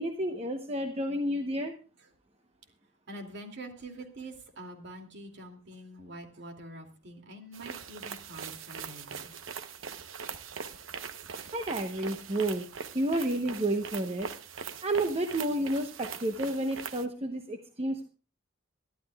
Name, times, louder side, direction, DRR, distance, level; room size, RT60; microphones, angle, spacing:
voice 1, 0.0-1.7 11.5-12.7 12.9-14.3 14.8-18.1, right 1 dB, 30° right, 5 dB, 0.9 m, -30 dB
voice 2, 3.1-9.3, right 1 dB, 60° right, 3 dB, 2.6 m, -45 dB
sound 1, 7.5-17.1, right 6 dB, 80° right, 0.9 m, -41 dB
22.5 x 13.0 x 2.3 m, 0.35 s
head